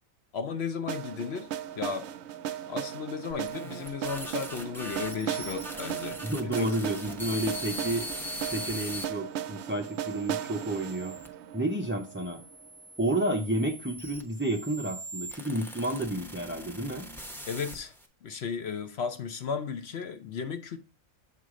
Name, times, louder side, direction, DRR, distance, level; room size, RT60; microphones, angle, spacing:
voice 1, 0.3-1.5 1.8-2.1 2.7-6.8 17.5-17.9 18.2-20.8, left 6 dB, 60° left, 0.8 m, -35 dB
sound 1, 0.9-12.8, right 10 dB, 65° right, 0.7 m, -37 dB
sound 2, 3.3-9.0 9.7-11.3 12.1-18.1, equal, ahead, 0.7 m, -41 dB
voice 2, 6.2-8.1 8.5-11.2 11.5-12.4 13.0-17.1, right 1 dB, 20° right, 0.3 m, -30 dB
7.5 x 4.8 x 3.7 m
omnidirectional pair, 1.4 m